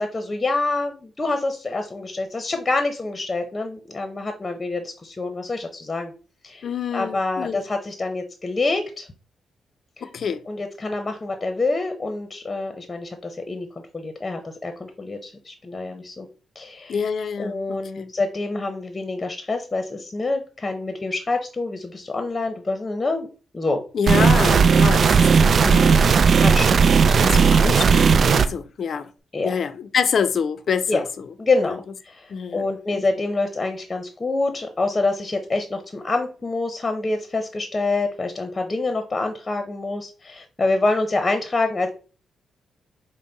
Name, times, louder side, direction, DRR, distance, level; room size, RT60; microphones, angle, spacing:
voice 1, 0.0-6.1 6.4-6.7 6.9-9.1 10.0-10.1 10.5-13.7 13.9-16.3 16.5-17.0 17.4-23.3 23.5-23.8 26.4-27.2 29.3-29.5 30.9-31.0 31.4-41.9, left 3 dB, 30° left, 0.8 m, -26 dB
voice 2, 6.6-7.6 10.0-10.4 16.9-18.1 23.9-26.0 27.2-29.1 29.4-31.3 31.6-31.7 32.3-33.0, left 6 dB, 60° left, 0.5 m, -27 dB
sound 1, 24.1-28.5, right 5 dB, 55° right, 0.3 m, -15 dB
5.2 x 2.1 x 4.0 m
cardioid pair, 70°, 0 cm